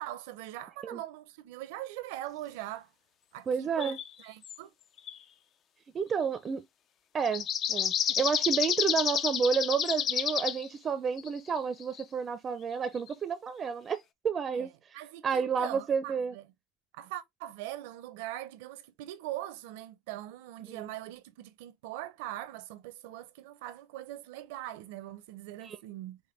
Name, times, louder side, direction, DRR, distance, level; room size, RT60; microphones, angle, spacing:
voice 1, 0.0-2.9 3.3-4.7 14.5-14.7 14.9-16.5 16.9-26.2, right 14 dB, 75° right, 0.6 m, -41 dB
voice 2, 3.5-4.0 5.9-6.6 7.1-14.7 15.2-16.4 20.7-20.9 25.6-25.8, right 6 dB, 30° right, 0.5 m, -30 dB
sound 1, 3.8-4.1 4.4-4.6 5.0-5.1 7.3-10.7 11.2-11.3 11.6-12.0 13.1-13.2, left 9 dB, 45° left, 0.5 m, -30 dB
5.2 x 2.2 x 3.2 m
supercardioid pair, 100°, 0 cm